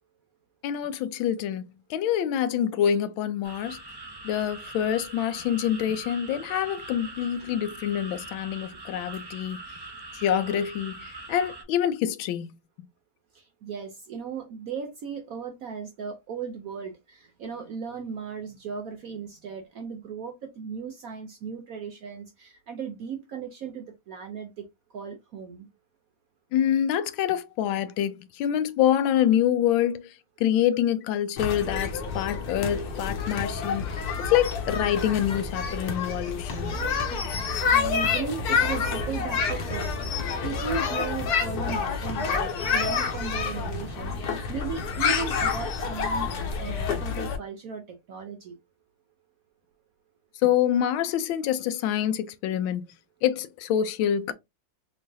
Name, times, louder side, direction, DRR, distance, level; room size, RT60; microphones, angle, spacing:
voice 1, 0.6-3.8 4.2-9.6 10.1-12.6 26.5-36.8 50.4-52.9 53.2-54.3, left 10 dB, 90° left, 1.4 m, -26 dB
sound 1, 3.4-11.6, right 2 dB, 30° right, 0.5 m, -42 dB
voice 2, 13.3-24.6 24.9-25.7 37.6-39.9 40.4-48.6, right 6 dB, 70° right, 0.8 m, -36 dB
sound 2, 31.4-47.4, left 5 dB, 60° left, 1.2 m, -28 dB
3.8 x 3.1 x 2.6 m
omnidirectional pair, 2.1 m